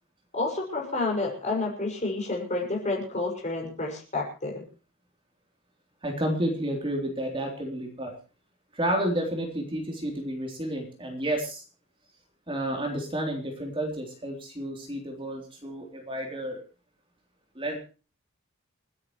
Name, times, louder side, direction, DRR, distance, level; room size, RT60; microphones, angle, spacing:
voice 1, 0.3-4.6, left 2 dB, 35° left, 0 dB, 6.0 m, -30 dB
voice 2, 6.0-8.1 8.7-11.6 12.5-16.6 17.6-17.8, right 1 dB, 25° right, 1 dB, 3.5 m, -31 dB
29.5 x 9.8 x 3.2 m, 0.34 s
head